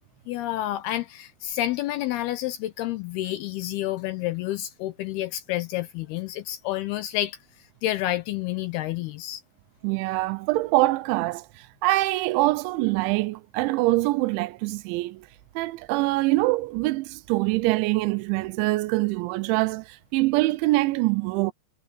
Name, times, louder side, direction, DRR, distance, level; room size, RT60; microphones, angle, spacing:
voice 1, 0.3-7.4 7.8-9.4, left 14 dB, 80° left, 2.3 m, -29 dB
voice 2, 9.8-15.3 15.6-21.5, right 20 dB, 85° right, 3.0 m, -24 dB
omnidirectional pair, 5.2 m